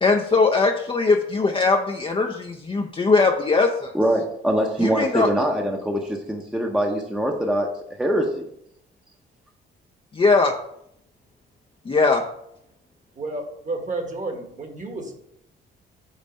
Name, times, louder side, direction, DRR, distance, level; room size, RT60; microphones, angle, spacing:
voice 1, 0.0-3.9 4.8-5.3 10.1-10.5 11.9-12.2, left 4 dB, 25° left, 3 dB, 0.5 m, -20 dB
voice 2, 3.9-7.7 8.0-8.5, equal, 5° right, 1 dB, 0.8 m, -23 dB
voice 3, 13.2-15.1, right 2 dB, 40° right, 4 dB, 1.4 m, -31 dB
5.5 x 4.0 x 5.3 m, 0.76 s
cardioid pair, 90°, 20 cm